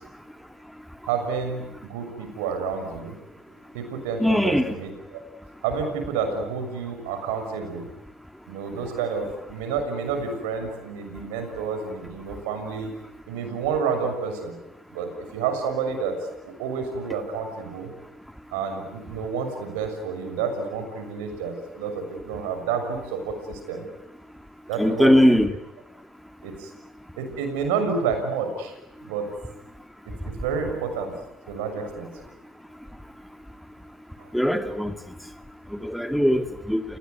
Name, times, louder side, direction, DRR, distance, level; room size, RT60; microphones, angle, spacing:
voice 1, 1.0-3.2 3.7-5.2 5.6-7.9 8.5-12.9 13.3-14.6 14.9-16.2 16.4-17.9 18.5-23.9 24.7-25.4 26.4-26.7 27.2-28.7 29.1-29.3 30.1-31.1 31.5-32.3 34.2-34.3, right 5 dB, 80° right, 7 dB, 6.5 m, -29 dB
voice 2, 4.2-4.7 24.8-25.5 34.3-34.9 35.8-36.8, equal, ahead, 8 dB, 2.2 m, -20 dB
29.0 x 19.5 x 9.6 m, 0.88 s
hypercardioid pair, 75°, 0 cm